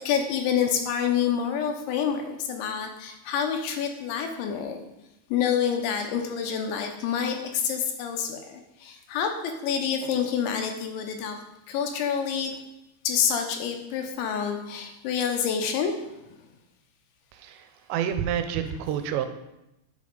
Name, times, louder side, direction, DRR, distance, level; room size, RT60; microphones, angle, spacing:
voice 1, 0.1-4.8 5.3-11.4 11.7-12.6 13.0-16.2, left 7 dB, 85° left, 5 dB, 3.3 m, -27 dB
voice 2, 17.3-19.3, right 9 dB, 85° right, 8 dB, 2.8 m, -29 dB
8.2 x 5.2 x 5.3 m, 0.91 s
omnidirectional pair, 5.1 m